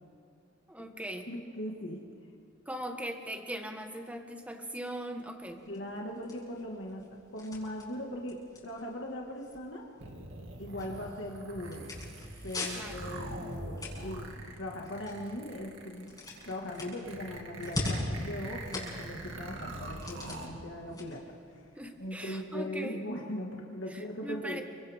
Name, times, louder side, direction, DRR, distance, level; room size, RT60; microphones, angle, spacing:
voice 1, 0.7-1.3 2.6-5.6 12.7-13.0 21.8-23.0 23.9-24.6, equal, 5° right, 4 dB, 1.5 m, -40 dB
voice 2, 1.3-2.0 5.7-8.4 8.6-9.9 10.6-11.9 12.4-16.2 16.4-21.6 22.0-24.6, left 1 dB, 65° left, -1 dB, 1.9 m, -39 dB
sound 1, 5.4-22.4, left 2 dB, 20° left, 6.0 m, -43 dB
sound 2, 10.0-20.5, right 2 dB, 80° right, 2.2 m, -43 dB
30.0 x 25.0 x 3.6 m, 2.6 s
head